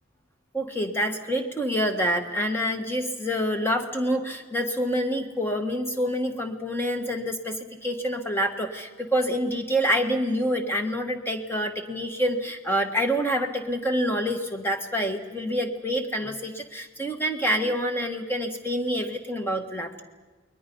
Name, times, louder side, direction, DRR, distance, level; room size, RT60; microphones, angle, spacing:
voice 1, 0.5-20.0, equal, 10° left, 5 dB, 1.5 m, -27 dB
29.5 x 21.5 x 5.4 m, 1.3 s
head